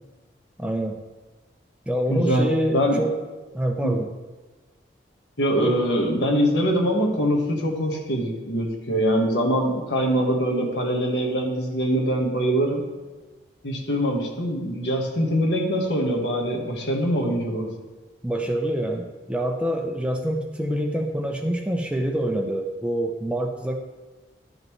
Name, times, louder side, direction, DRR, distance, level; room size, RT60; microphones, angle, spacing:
voice 1, 0.6-1.0 1.9-3.2 3.5-4.1 5.6-5.8 18.2-23.8, right 1 dB, 5° right, 4 dB, 0.4 m, -26 dB
voice 2, 2.1-2.5 2.7-3.0 3.8-3.9 5.4-12.8 13.6-17.7, equal, 80° left, 0 dB, 1.4 m, -23 dB
12.0 x 5.3 x 3.2 m, 1.3 s
head